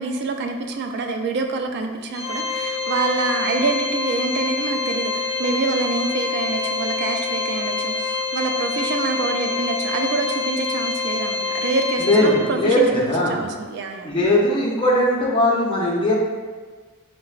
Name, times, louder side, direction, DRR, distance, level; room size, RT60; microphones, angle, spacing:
voice 1, 0.0-14.1, right 3 dB, 55° right, 5 dB, 0.3 m, -26 dB
Organ, 2.1-12.8, left 4 dB, 15° right, 0.7 m, -26 dB
voice 2, 12.0-13.4 14.0-16.1, left 1 dB, 25° left, -5 dB, 0.5 m, -19 dB
4.2 x 2.0 x 2.4 m, 1.4 s
head